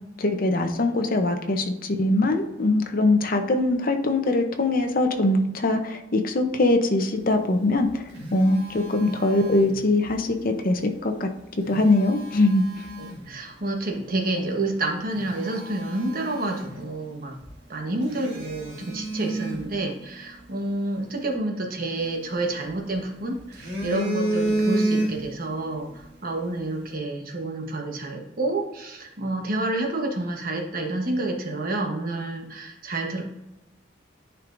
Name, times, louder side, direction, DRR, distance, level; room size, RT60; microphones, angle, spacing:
voice 1, 0.2-8.0 8.3-11.3 11.7-12.6, left 2 dB, 50° left, 5 dB, 0.8 m, -22 dB
Telephone, 7.6-10.2 11.4-13.3 13.9-14.1 14.7-14.8 15.1-17.2 17.4-17.6 18.1-20.4 22.0-23.0 23.3-25.5 25.8-26.0, right 1 dB, 65° right, 1.9 m, -31 dB
voice 2, 13.0-17.4 17.7-33.2, right 2 dB, 50° right, 1 dB, 1.2 m, -29 dB
10.5 x 4.6 x 2.6 m, 0.92 s
head